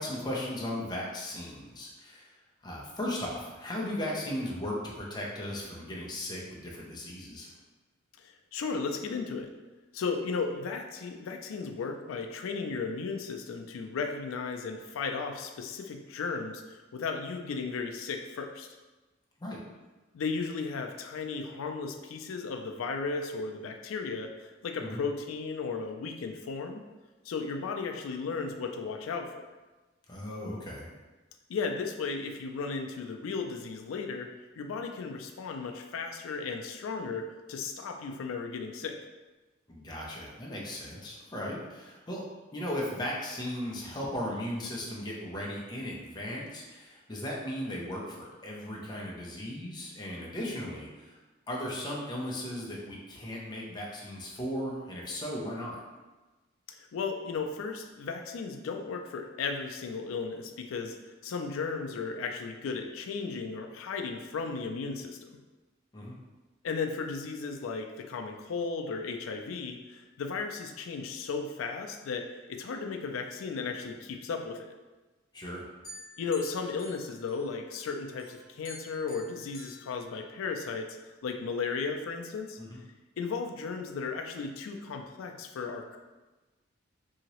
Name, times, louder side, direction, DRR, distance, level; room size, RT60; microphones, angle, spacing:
voice 1, 0.0-2.3 2.6-7.6 19.4-19.6 24.8-25.0 30.1-30.9 39.7-42.2 42.5-51.2 51.5-55.8 65.9-66.2 75.3-75.7 82.6-82.8, left 1 dB, 20° left, -3 dB, 0.5 m, -37 dB
voice 2, 8.2-9.5 9.9-18.7 20.1-26.8 27.3-29.3 31.5-34.3 34.6-39.0 56.7-60.9 61.2-65.2 66.6-74.7 76.2-82.6 83.2-86.0, left 4 dB, 80° left, 5 dB, 0.4 m, -35 dB
sound 1, 75.8-77.8 78.2-80.7, left 2 dB, 50° left, 0.9 m, -50 dB
2.8 x 2.8 x 2.9 m, 1.2 s
head